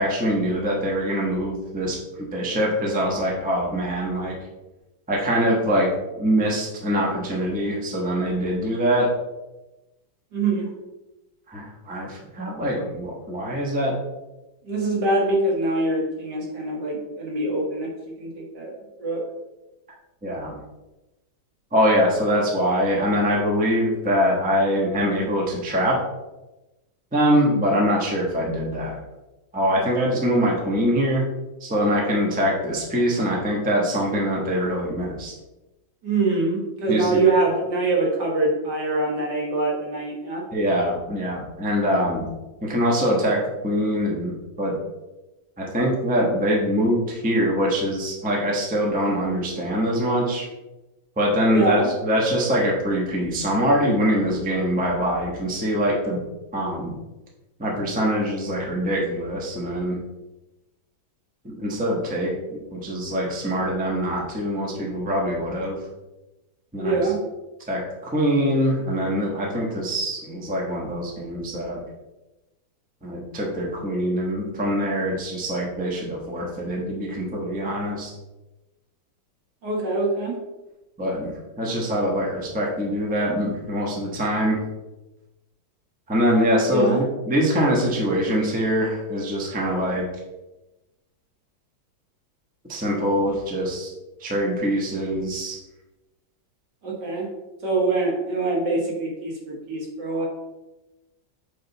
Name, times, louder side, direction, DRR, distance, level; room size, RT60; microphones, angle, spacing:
voice 1, 0.0-4.3 5.1-9.1 11.5-13.9 20.2-20.6 21.7-26.0 27.1-29.0 29.5-31.2 31.6-35.3 36.9-37.2 40.5-42.3 42.6-43.4 43.6-44.7 45.6-50.5 51.2-56.2 56.5-56.9 57.6-60.0 61.4-62.3 62.7-65.8 66.7-67.1 67.7-71.8 73.0-78.1 81.0-81.3 81.6-84.6 86.1-90.1 92.7-93.9 94.2-95.6, equal, 5° right, -3 dB, 0.8 m, -23 dB
voice 2, 10.3-10.7 14.6-17.9 18.2-18.7 19.0-19.2 36.0-40.4 51.5-51.9 66.8-67.2 79.6-80.4 86.7-87.0 96.8-97.3 97.6-100.3, right 2 dB, 60° right, -2 dB, 2.0 m, -24 dB
7.6 x 3.2 x 4.0 m, 1.0 s
omnidirectional pair, 2.1 m